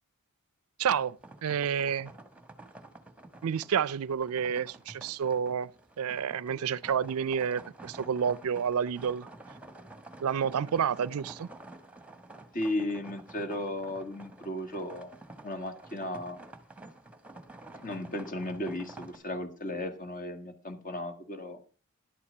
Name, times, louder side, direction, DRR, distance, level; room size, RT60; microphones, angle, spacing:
voice 1, 0.8-1.2 1.4-2.1 3.4-5.7 6.0-9.3 10.2-11.5, right 7 dB, 75° right, 0.4 m, -29 dB
sound 1, 0.9-19.2, right 2 dB, 5° right, 1.3 m, -50 dB
voice 2, 12.5-15.1 15.4-16.4 17.8-21.6, left 1 dB, 40° left, 1.7 m, -35 dB
11.0 x 8.6 x 5.4 m
head